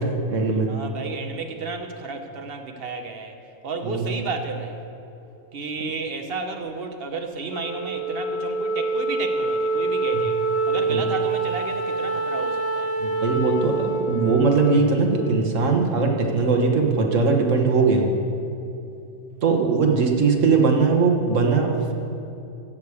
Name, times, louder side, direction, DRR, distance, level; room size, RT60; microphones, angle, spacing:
voice 1, 0.0-0.8 3.8-4.1 10.9-11.0 13.0-18.1 19.4-21.9, right 4 dB, 80° right, 2 dB, 1.6 m, -20 dB
voice 2, 0.7-3.4 3.6-4.8 5.5-10.4 10.7-12.9 19.3-19.4, right 4 dB, 50° right, 5 dB, 1.1 m, -32 dB
Wind instrument woodwind instrument, 7.5-16.1, right 3 dB, 60° left, 1.5 m, -26 dB
14.5 x 4.9 x 8.4 m, 2.7 s
omnidirectional pair, 1.3 m